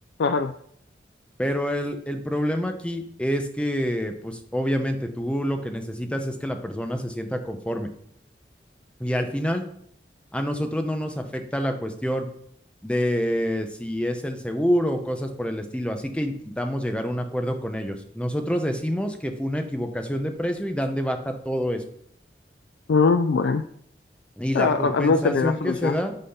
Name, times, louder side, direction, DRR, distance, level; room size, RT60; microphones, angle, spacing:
voice 1, 0.2-0.5 22.9-23.6 24.5-26.0, left 4 dB, 85° left, 9 dB, 0.4 m, -21 dB
voice 2, 1.4-7.9 9.0-9.6 10.3-12.3 12.8-21.8 24.4-26.1, equal, 5° left, 6 dB, 0.7 m, -27 dB
8.6 x 4.1 x 5.6 m, 0.68 s
head